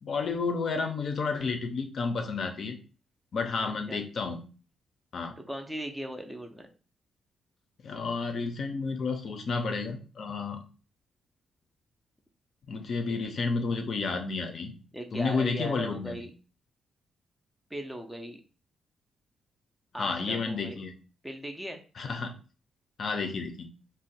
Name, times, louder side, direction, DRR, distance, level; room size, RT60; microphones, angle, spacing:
voice 1, 0.0-2.8 3.3-4.4 5.1-5.3 7.8-10.6 12.7-14.7 15.1-16.2 20.0-20.9 22.0-22.3 23.0-23.7, left 4 dB, 50° left, 6 dB, 0.5 m, -31 dB
voice 2, 3.6-4.0 5.4-6.7 14.9-16.3 17.7-18.4 19.9-20.8 21.2-21.8, equal, 5° right, 4 dB, 0.4 m, -38 dB
2.5 x 2.1 x 4.0 m, 0.36 s
cardioid pair, 115°, 0 cm